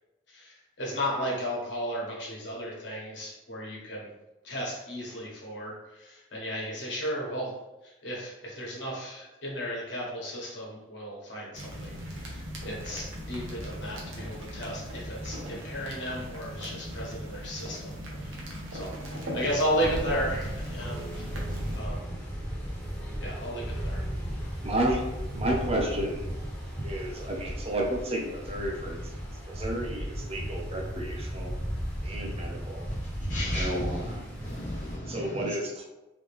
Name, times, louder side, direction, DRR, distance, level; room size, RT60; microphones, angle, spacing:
voice 1, 0.3-4.1 4.4-7.5 7.8-18.4 18.7-21.1 21.5-22.0 23.2-24.1, equal, 65° left, -4 dB, 1.5 m, -34 dB
sound 1, 11.5-21.8, equal, 85° right, 1.0 m, -38 dB
sound 2, 19.8-35.0, equal, 5° left, 1.2 m, -35 dB
voice 2, 24.6-25.1 25.3-26.3 26.8-31.6 32.0-32.9 33.5-34.2 35.1-35.9, right 1 dB, 30° right, 0 dB, 0.6 m, -32 dB
voice 3, 32.9-34.1 34.4-35.5, left 1 dB, 35° left, -4 dB, 0.6 m, -37 dB
3.8 x 3.2 x 3.5 m, 0.99 s
head